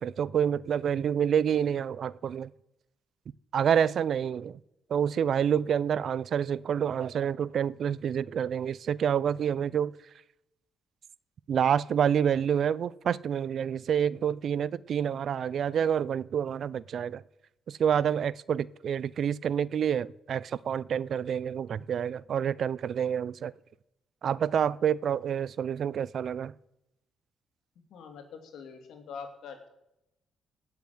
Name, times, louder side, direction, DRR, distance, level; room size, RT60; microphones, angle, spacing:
voice 1, 0.0-2.5 3.5-4.6 4.9-9.9 11.5-17.2 17.7-23.5 24.2-26.5, right 8 dB, 60° right, 0.4 m, -28 dB
voice 2, 27.9-29.7, left 6 dB, 75° left, 2.9 m, -44 dB
18.5 x 7.1 x 8.0 m
cardioid pair, 90°, 0 cm